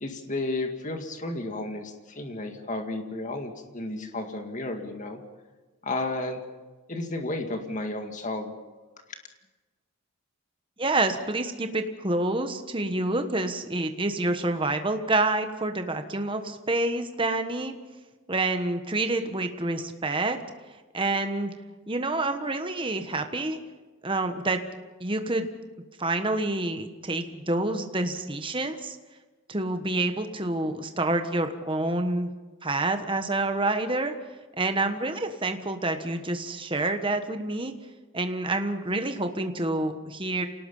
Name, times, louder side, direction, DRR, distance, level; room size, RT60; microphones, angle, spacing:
voice 1, 0.0-5.2 5.8-6.4 6.9-8.5, left 2 dB, 35° left, 5 dB, 2.0 m, -32 dB
voice 2, 10.8-17.7 18.3-20.4 20.9-21.5 21.9-23.6 24.0-24.6 25.0-25.5 26.0-29.0 29.5-32.3 32.6-34.1 34.6-37.7 38.1-40.5, right 2 dB, 20° right, 7 dB, 1.3 m, -28 dB
27.0 x 18.5 x 5.6 m, 1.3 s
head